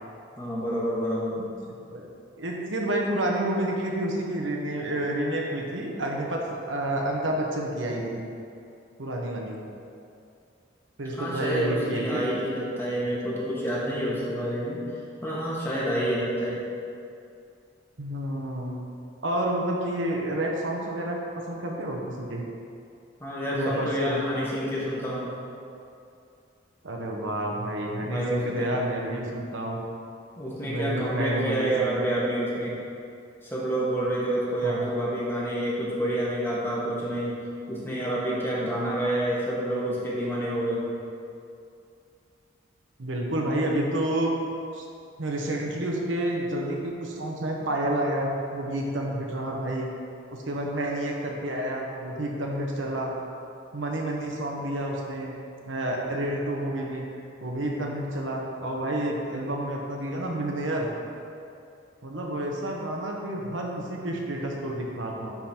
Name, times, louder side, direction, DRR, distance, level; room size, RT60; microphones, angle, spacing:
voice 1, 0.4-1.4 11.2-14.8 15.2-16.6 23.2-25.3 28.0-28.7 30.4-32.8 33.4-37.4 37.7-40.9, right 1 dB, 10° left, -7 dB, 1.3 m, -28 dB
voice 2, 2.4-8.3 9.0-9.6 11.0-12.2 18.0-18.8 19.2-22.4 23.5-24.2 26.8-29.8 30.6-31.9 34.6-34.9 43.0-44.4 44.7-44.8 45.2-49.9 50.3-53.1 53.7-55.3 55.6-57.0 57.4-60.9 62.0-65.3, right 1 dB, 85° right, 0 dB, 1.0 m, -29 dB
10.0 x 3.8 x 4.4 m, 2.5 s
head